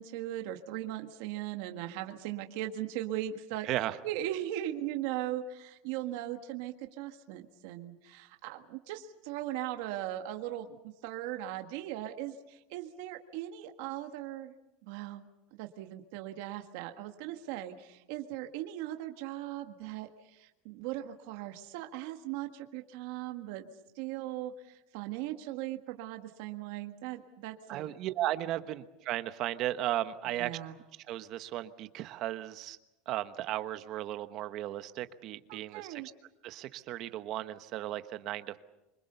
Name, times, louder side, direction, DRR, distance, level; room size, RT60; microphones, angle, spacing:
voice 1, 0.0-3.7 4.0-14.5 14.8-23.6 23.9-27.9 30.3-30.7 35.5-36.1, right 13 dB, 55° right, 5 dB, 1.7 m, -39 dB
voice 2, 3.7-4.0 27.7-30.6 31.1-32.8 33.1-36.0 36.4-38.6, right 13 dB, 35° right, 11 dB, 1.1 m, -35 dB
26.0 x 24.0 x 6.9 m, 0.95 s
supercardioid pair, 170°, 0 cm